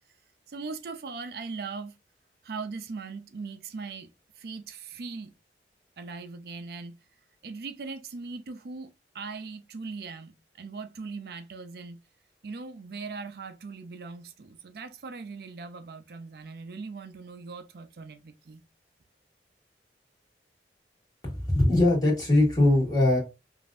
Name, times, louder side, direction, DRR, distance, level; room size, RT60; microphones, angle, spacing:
voice 1, 0.5-1.9 2.4-4.1 4.4-5.3 6.0-7.0 7.4-12.0 12.4-18.6, right 4 dB, 60° right, 0.4 m, -40 dB
voice 2, 21.2-23.2, left 1 dB, 20° left, 1.6 m, -21 dB
5.2 x 2.6 x 2.4 m
head